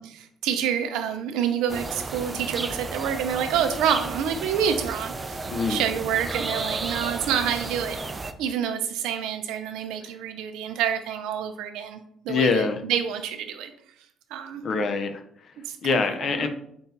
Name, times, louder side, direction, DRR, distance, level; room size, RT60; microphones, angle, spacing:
voice 1, 0.0-5.4 5.7-8.0 8.4-12.0 12.2-13.7 14.3-14.6 15.7-16.1 16.4-16.5, right 8 dB, 90° right, 8 dB, 0.4 m, -27 dB
sound 1, 1.7-8.3, right 3 dB, 30° right, 0.3 m, -33 dB
voice 2, 5.5-5.8 12.3-12.8 14.6-15.5 15.8-16.5, left 4 dB, 55° left, 7 dB, 0.5 m, -25 dB
5.2 x 2.3 x 2.7 m, 0.68 s
cardioid pair, 90°, 0 cm